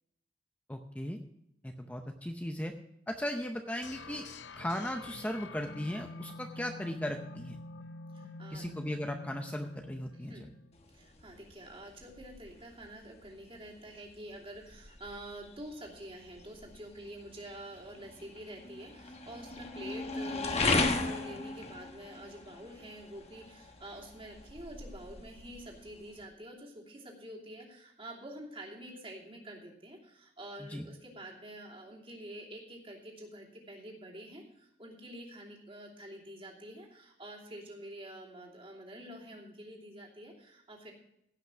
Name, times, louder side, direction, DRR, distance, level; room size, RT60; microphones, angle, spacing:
voice 1, 0.7-1.2 1.6-2.7 3.1-4.3 4.6-7.6 8.5-10.4 30.6-30.9, left 1 dB, 10° left, 4 dB, 0.7 m, -37 dB
sound 1, 3.8-10.8, left 2 dB, 90° left, 0.7 m, -47 dB
voice 2, 8.1-8.6 10.1-10.4 10.9-40.9, right 1 dB, 30° right, -2 dB, 2.9 m, -47 dB
sound 2, 10.7-26.2, left 3 dB, 35° left, 1.2 m, -38 dB
16.5 x 6.0 x 6.0 m, 0.79 s
head